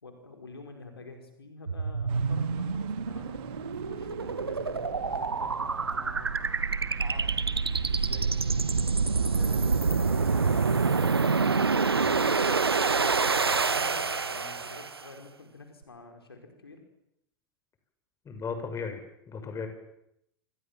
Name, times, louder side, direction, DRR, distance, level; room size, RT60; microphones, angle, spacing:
voice 1, 0.0-3.4 3.8-6.5 7.0-7.4 7.9-8.7 9.3-11.5 12.0-16.8, left 3 dB, 80° left, 4 dB, 5.0 m, -48 dB
sound 1, 1.7-15.1, right 4 dB, 80° right, 1.2 m, -27 dB
sound 2, 2.1-12.3, right 14 dB, 45° right, 2.0 m, -46 dB
voice 2, 18.2-19.7, left 5 dB, 25° left, 7 dB, 6.6 m, -36 dB
28.0 x 26.5 x 7.5 m, 0.80 s
figure-of-eight pair, 85°, 13 cm